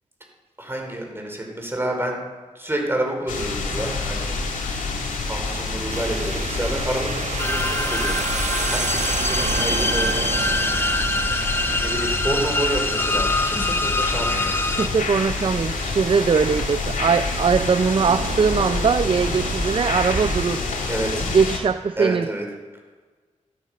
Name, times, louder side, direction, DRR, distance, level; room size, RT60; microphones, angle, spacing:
voice 1, 0.6-2.2 2.5-4.3 5.3-8.2 8.7-10.1 11.8-14.5 20.9-21.3 22.0-22.4, right 1 dB, 15° right, 1 dB, 4.9 m, -28 dB
sound 1, 3.3-21.6, left 3 dB, 80° left, 2.6 m, -27 dB
sound 2, 5.9-20.4, right 5 dB, 60° right, 1.0 m, -32 dB
sound 3, 7.4-14.9, left 2 dB, 15° left, 0.8 m, -25 dB
voice 2, 14.8-20.7 21.2-22.3, right 5 dB, 40° right, 12 dB, 0.5 m, -21 dB
13.0 x 13.0 x 6.4 m, 1.4 s
cardioid pair, 60°, 13 cm